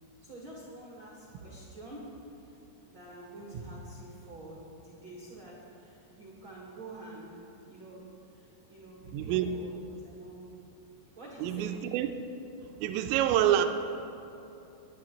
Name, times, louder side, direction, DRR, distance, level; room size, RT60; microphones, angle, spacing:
voice 1, 0.2-2.0 2.3-2.6 2.8-8.1 8.3-10.5 11.1-11.7, right 2 dB, 60° right, -6 dB, 1.3 m, -46 dB
voice 2, 9.1-9.4 11.4-12.1 12.6-13.7, right 12 dB, 90° right, 7 dB, 2.9 m, -27 dB
21.0 x 10.0 x 3.0 m, 2.9 s
omnidirectional pair, 5.0 m